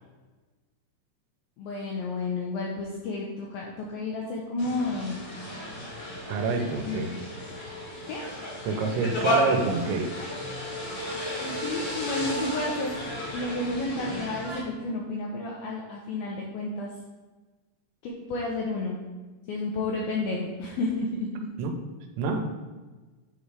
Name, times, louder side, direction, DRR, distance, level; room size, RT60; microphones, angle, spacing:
voice 1, 1.6-5.2 6.7-7.1 8.1-8.2 11.4-13.0 13.3-16.9 18.0-19.0 19.5-21.5, left 2 dB, 85° left, -2 dB, 2.2 m, -31 dB
sound 1, 4.6-14.6, left 1 dB, 45° left, 1.9 m, -33 dB
voice 2, 6.3-7.1 8.6-10.1 21.6-21.8 22.2-22.5, right 4 dB, 85° right, 4 dB, 3.0 m, -27 dB
9.5 x 3.2 x 4.8 m, 1.3 s
omnidirectional pair, 5.1 m